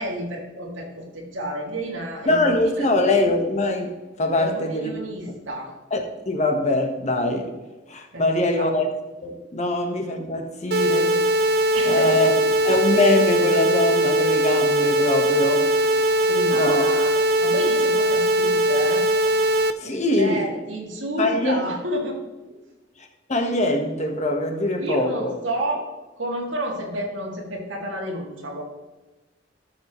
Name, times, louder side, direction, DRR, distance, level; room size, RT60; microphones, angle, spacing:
voice 1, 0.0-2.9 4.3-5.7 8.1-8.7 11.7-12.3 16.1-19.1 20.2-22.2 24.8-28.6, right 1 dB, 90° right, -1 dB, 2.4 m, -30 dB
voice 2, 2.3-3.9 4.2-4.9 5.9-7.5 7.9-8.9 9.2-11.2 11.8-12.3 12.6-15.7 16.5-16.9 19.8-20.4 21.2-21.6 23.3-25.3, left 2 dB, 40° left, 4 dB, 1.3 m, -23 dB
sound 1, 10.7-19.7, right 1 dB, 55° right, 0.6 m, -20 dB
13.0 x 7.2 x 3.1 m, 1.1 s
head